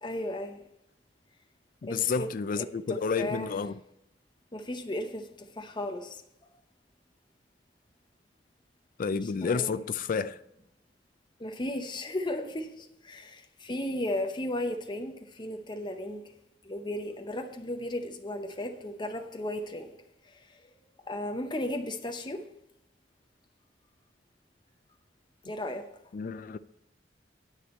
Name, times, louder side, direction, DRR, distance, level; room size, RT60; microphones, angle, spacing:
voice 1, 0.0-0.6 1.9-2.3 2.5-3.5 4.5-6.2 9.2-9.8 11.4-16.3 16.6-19.9 20.2-20.6 21.1-22.5 25.4-25.9, left 1 dB, 25° left, 0.8 m, -35 dB
voice 2, 1.8-3.7 9.0-10.4 26.1-26.6, left 5 dB, 50° left, 0.4 m, -30 dB
9.8 x 9.8 x 4.3 m
head